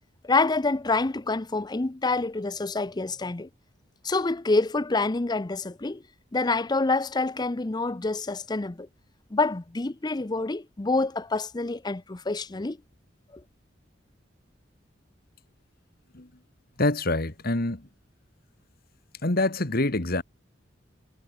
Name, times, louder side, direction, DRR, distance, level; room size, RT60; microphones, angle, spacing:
voice 1, 0.2-3.5 4.0-6.0 6.3-8.9 9.3-12.8, left 3 dB, 20° left, 0.6 m, -27 dB
voice 2, 16.8-17.9 19.2-20.2, left 2 dB, 50° left, 2.0 m, -25 dB
head